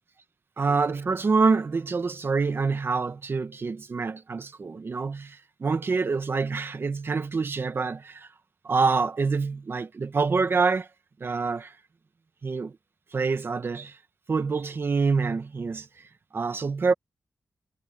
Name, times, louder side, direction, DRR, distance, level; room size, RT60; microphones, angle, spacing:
voice 1, 0.6-8.3 8.6-10.9 11.2-11.8 12.4-12.7 13.1-14.0 14.3-15.9 16.3-16.9, right 4 dB, 40° right, 1.1 m, -26 dB
wide cardioid pair, 160°, 6 cm